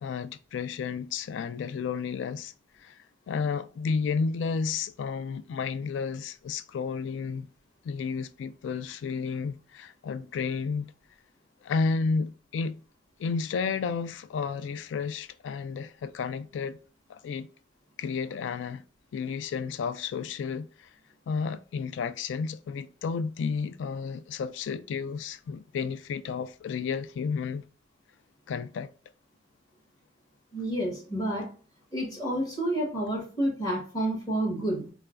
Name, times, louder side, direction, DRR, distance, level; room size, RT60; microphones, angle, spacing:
voice 1, 0.0-2.5 2.8-3.0 3.3-7.5 7.8-10.9 11.6-12.8 13.2-16.8 17.1-17.5 18.0-18.8 19.1-20.7 21.3-27.7 28.5-28.9, left 5 dB, 85° left, 0.3 m, -32 dB
voice 2, 30.5-31.5 31.9-34.9, right 1 dB, 20° left, 1.4 m, -29 dB
4.5 x 2.1 x 2.4 m
head